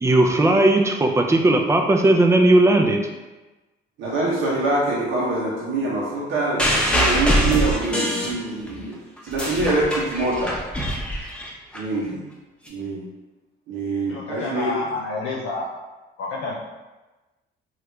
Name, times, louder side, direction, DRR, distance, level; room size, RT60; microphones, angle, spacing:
voice 1, 0.0-3.0, right 2 dB, 15° right, 3 dB, 0.4 m, -17 dB
voice 2, 4.0-9.0 9.2-10.5 11.7-12.2 12.7-13.0 13.7-14.8, right 2 dB, 85° right, -5 dB, 0.7 m, -24 dB
sound 1, 6.6-8.8 9.2-11.8 12.7-12.8, equal, 5° left, 0.8 m, -23 dB
voice 3, 14.1-15.7 16.2-16.5, left 3 dB, 80° left, -3 dB, 0.5 m, -29 dB
3.2 x 2.4 x 3.0 m, 1.1 s
cardioid pair, 90°, 20 cm